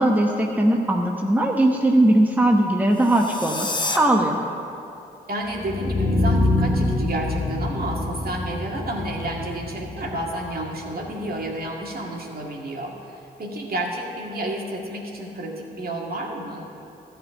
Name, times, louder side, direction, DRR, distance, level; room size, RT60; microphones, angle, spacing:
voice 1, 0.0-4.4, right 1 dB, 10° right, 1 dB, 1.0 m, -19 dB
sound 1, 2.9-4.0, left 3 dB, 20° left, 1.1 m, -29 dB
voice 2, 5.3-16.6, right 1 dB, 45° right, -1 dB, 2.0 m, -30 dB
sound 2, 5.5-11.5, left 2 dB, 45° left, 1.5 m, -26 dB
13.5 x 4.5 x 8.5 m, 2.7 s
hypercardioid pair, 45°, 21 cm